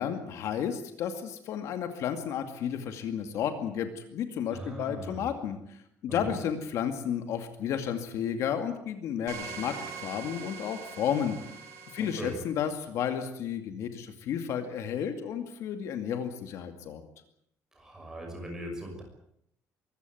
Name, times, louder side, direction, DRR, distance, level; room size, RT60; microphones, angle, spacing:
voice 1, 0.0-11.4 11.9-17.0, left 8 dB, 60° left, 8 dB, 2.3 m, -32 dB
voice 2, 4.5-5.3 6.1-6.4 12.0-12.3 17.7-19.0, equal, 10° right, 2 dB, 6.2 m, -39 dB
sound 1, 9.3-12.4, right 5 dB, 75° right, 6.8 m, -42 dB
24.0 x 15.5 x 9.3 m, 0.75 s
cardioid pair, 175°, 6 cm